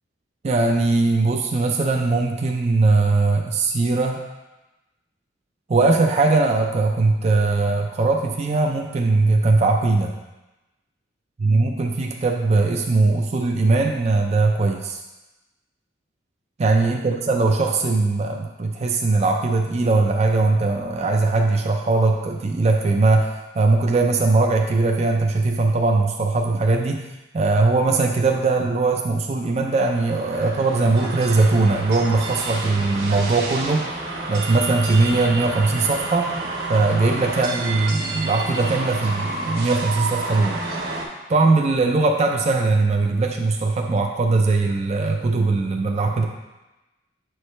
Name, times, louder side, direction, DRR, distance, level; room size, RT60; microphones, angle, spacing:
voice 1, 0.4-4.2 5.7-10.1 11.4-15.0 16.6-27.0 27.3-33.9 34.3-36.3 36.7-40.6 41.3-46.3, right 3 dB, 35° right, 2 dB, 0.4 m, -20 dB
sound 1, 29.5-41.0, right 2 dB, 60° right, 1.2 m, -30 dB
7.2 x 4.6 x 3.2 m, 1.0 s
head